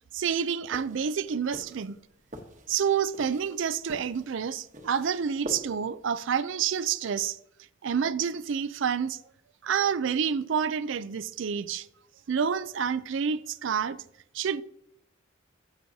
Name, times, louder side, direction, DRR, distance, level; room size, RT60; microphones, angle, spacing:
voice 1, 0.1-2.0 2.7-7.4 7.8-9.2 9.6-11.9 12.3-14.0 14.3-14.6, right 7 dB, 60° right, 0.4 m, -28 dB
sound 1, 0.7-6.1, equal, 35° right, 1.0 m, -45 dB
15.0 x 6.1 x 2.7 m
head